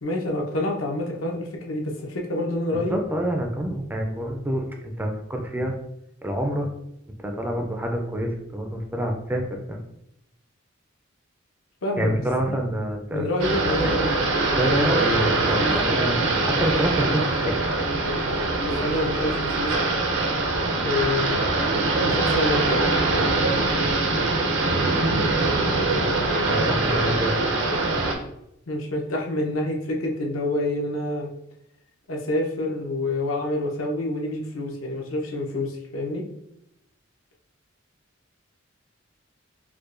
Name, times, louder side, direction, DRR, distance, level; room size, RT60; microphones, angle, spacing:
voice 1, 0.0-3.0 11.8-12.6 13.1-14.1 14.6-15.9 18.6-19.8 20.8-21.4 22.0-22.8 28.7-31.3 32.1-36.2, left 1 dB, 85° left, 0 dB, 0.7 m, -27 dB
voice 2, 2.7-5.8 6.2-6.7 7.2-9.8 12.0-13.3 13.8-14.0 14.5-17.6 26.5-27.3, right 1 dB, 10° right, 2 dB, 0.3 m, -27 dB
sound 1, 13.4-28.1, right 2 dB, 65° right, 0.5 m, -23 dB
4.6 x 2.2 x 2.5 m, 0.80 s
head